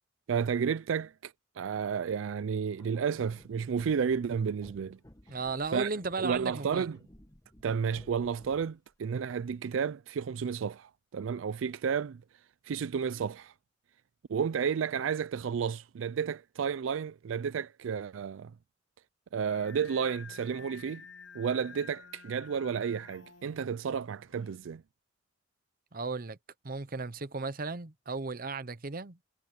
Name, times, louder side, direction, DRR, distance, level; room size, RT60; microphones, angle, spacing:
voice 1, 0.3-5.0 5.7-5.9 6.2-7.0 7.6-12.2 12.6-13.5 14.3-18.6 19.3-21.0 21.3-24.8, right 6 dB, 85° right, 0.4 m, -32 dB
sound 1, 2.8-8.9, left 1 dB, 20° left, 1.4 m, -56 dB
voice 2, 5.3-6.9 25.9-26.4 26.6-29.2, right 3 dB, 45° right, 0.9 m, -35 dB
Singing, 19.5-24.6, left 5 dB, 85° left, 5.2 m, -51 dB
head